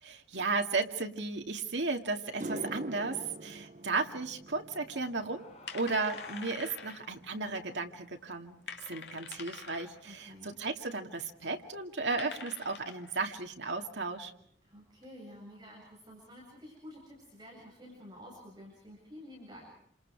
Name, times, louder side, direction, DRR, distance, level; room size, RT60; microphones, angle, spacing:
voice 1, 0.0-5.5 5.7-8.6 8.9-14.3, right 3 dB, 75° right, 4 dB, 2.4 m, -34 dB
sound 1, 1.7-1.8 2.2-10.7 11.0-11.4 15.0-15.1 16.8-16.9 17.2-17.3 17.6-18.1, right 1 dB, 40° right, 1.0 m, -47 dB
sound 2, 4.7-4.8 5.1-5.2 5.7-7.4 8.0-8.1 8.4-10.0 10.5-10.6 11.4-11.5 12.2-13.2, left 6 dB, 70° left, 2.2 m, -46 dB
sound 3, 4.7-9.8, left 2 dB, 35° left, 3.1 m, -54 dB
voice 2, 10.0-10.6 14.6-19.7, equal, 25° right, -3 dB, 7.8 m, -50 dB
29.0 x 27.5 x 4.8 m, 0.65 s
head